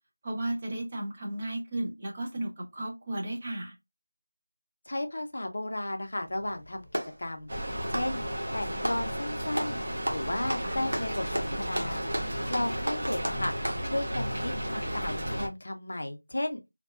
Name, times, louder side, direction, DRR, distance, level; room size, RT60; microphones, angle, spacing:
voice 1, 0.2-3.8 10.6-10.8, right 1 dB, 15° right, 0.3 m, -34 dB
voice 2, 4.9-8.2 8.5-9.8 10.1-13.5 13.8-16.6, left 1 dB, 45° left, 0.5 m, -34 dB
Clapping, 6.3-7.2 7.8-9.1 9.5-9.8 10.1-13.9, right 1 dB, 90° right, 0.9 m, -34 dB
Rain, 7.5-15.5, equal, 45° right, 1.0 m, -33 dB
2.7 x 2.2 x 2.3 m
figure-of-eight pair, 180°, 0 cm